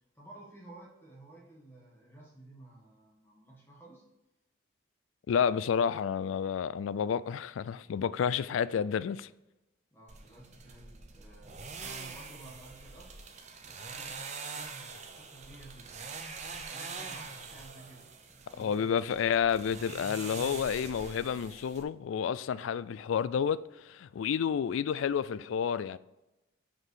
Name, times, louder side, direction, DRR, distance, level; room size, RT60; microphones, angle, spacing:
voice 1, 0.1-4.0 9.9-13.1 13.6-16.0 16.5-18.9, right 2 dB, 10° left, 1.5 m, -53 dB
voice 2, 5.3-9.3 18.6-26.0, left 7 dB, 80° left, 0.3 m, -30 dB
sound 1, 10.1-21.8, right 4 dB, 35° right, 0.7 m, -44 dB
5.9 x 5.5 x 4.8 m
head